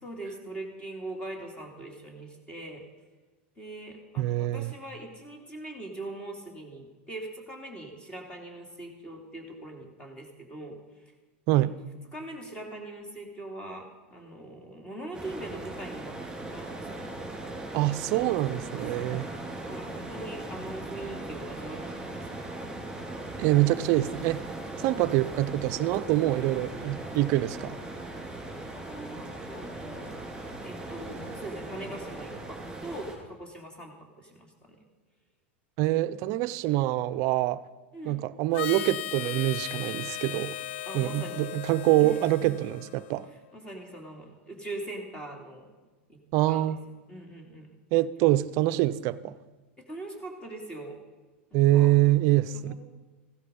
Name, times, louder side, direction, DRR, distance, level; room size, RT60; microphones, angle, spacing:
voice 1, 0.0-2.8 3.6-11.0 11.5-11.7 12.1-17.0 19.0-22.3 28.7-30.1 30.6-34.8 37.9-38.2 40.9-41.5 42.0-42.5 43.3-45.7 46.1-46.2 46.5-46.7 47.1-47.7 49.8-51.0 51.5-51.9 52.5-52.7, right 1 dB, 15° left, 3.0 m, -42 dB
voice 2, 4.2-4.7 11.5-11.8 17.7-19.3 23.4-24.4 24.8-27.8 35.8-37.6 38.1-40.6 40.9-43.3 46.3-46.8 47.9-49.4 51.5-52.7, right 15 dB, 50° right, 0.6 m, -25 dB
sound 1, 15.1-33.2, right 2 dB, 10° right, 4.3 m, -39 dB
sound 2, 18.6-32.3, left 1 dB, 35° left, 5.4 m, -52 dB
Harmonica, 38.5-43.3, left 13 dB, 65° left, 0.4 m, -37 dB
16.0 x 12.5 x 5.4 m
hypercardioid pair, 120°, 7 cm